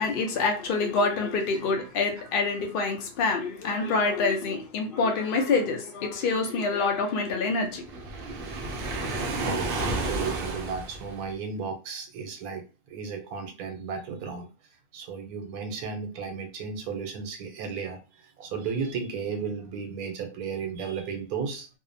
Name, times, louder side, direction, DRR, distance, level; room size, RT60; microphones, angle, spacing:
voice 1, 0.0-7.8, left 4 dB, 80° left, 0.4 m, -26 dB
Waves surf, 7.8-11.3, right 2 dB, 70° right, 0.5 m, -31 dB
voice 2, 9.0-12.6 12.9-14.5 14.9-18.0 18.4-21.7, right 5 dB, 90° right, 1.1 m, -34 dB
2.6 x 2.0 x 2.5 m
omnidirectional pair, 1.5 m